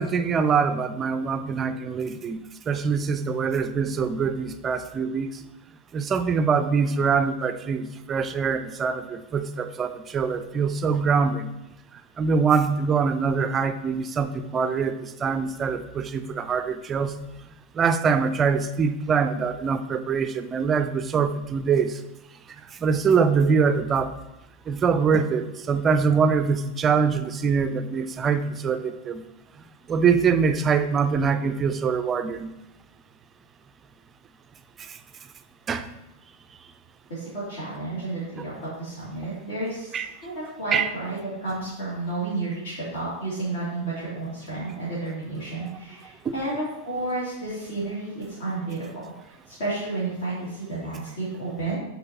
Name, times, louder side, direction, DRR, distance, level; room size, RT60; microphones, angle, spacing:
voice 1, 0.0-2.4 2.7-5.3 5.9-11.5 12.2-17.2 17.8-22.0 22.8-24.1 24.7-29.2 29.9-32.5 35.7-35.9 39.9-40.1 40.7-40.9 46.3-46.4, right 5 dB, 25° right, 10 dB, 0.4 m, -24 dB
voice 2, 37.1-49.0 49.5-51.8, right 2 dB, 60° left, -9 dB, 2.5 m, -31 dB
9.7 x 4.0 x 2.9 m, 0.94 s
figure-of-eight pair, 90°, 0 cm